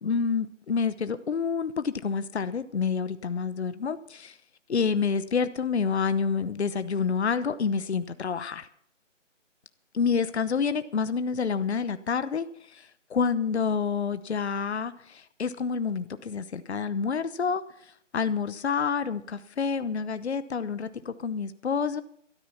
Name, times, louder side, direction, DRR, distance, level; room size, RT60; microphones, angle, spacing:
voice 1, 0.0-4.4 4.7-8.7 9.9-22.0, left 5 dB, 60° left, 13 dB, 0.9 m, -28 dB
13.5 x 13.0 x 5.8 m, 0.68 s
figure-of-eight pair, 165°, 37 cm